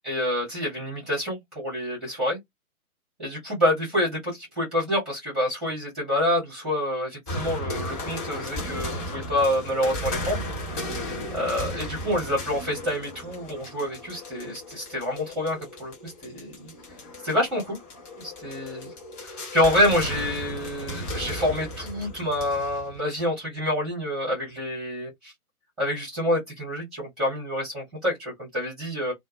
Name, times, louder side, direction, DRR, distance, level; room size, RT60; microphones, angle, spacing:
voice 1, 0.0-2.4 3.2-10.4 11.3-16.7 17.2-17.8 18.2-18.9 19.2-25.3 25.8-29.1, left 1 dB, ahead, 0.5 m, -27 dB
sound 1, 7.3-23.0, left 1 dB, 15° left, 1.0 m, -35 dB
2.2 x 2.0 x 3.0 m
figure-of-eight pair, 130°, 45 cm